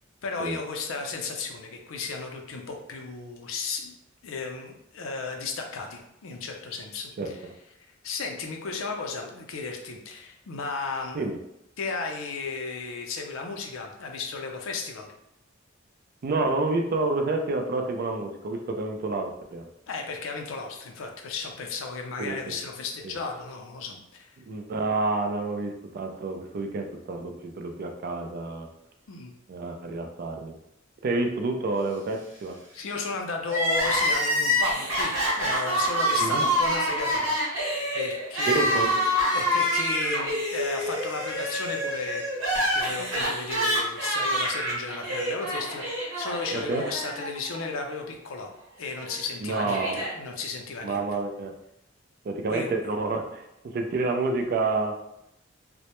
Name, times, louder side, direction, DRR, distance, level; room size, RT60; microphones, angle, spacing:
voice 1, 0.2-3.9 4.2-7.5 8.0-11.2 11.8-15.1 19.9-24.4 29.1-29.3 32.7-37.3 37.9-42.2 42.5-48.5 48.8-51.0 52.5-52.7, left 4 dB, 90° left, 2 dB, 0.5 m, -34 dB
voice 2, 7.2-7.5 11.1-11.4 16.2-19.7 22.2-22.6 23.0-23.2 24.4-28.7 29.5-30.6 31.0-32.6 36.2-36.4 38.5-38.9 46.5-46.8 49.4-50.0 50.8-51.5 52.2-55.0, right 3 dB, 50° right, 4 dB, 0.3 m, -29 dB
Crying sobbing, 33.4-47.6 47.9-48.0 49.0-50.1, equal, 80° right, 1.0 m, -27 dB
2.1 x 2.1 x 2.9 m, 0.82 s
head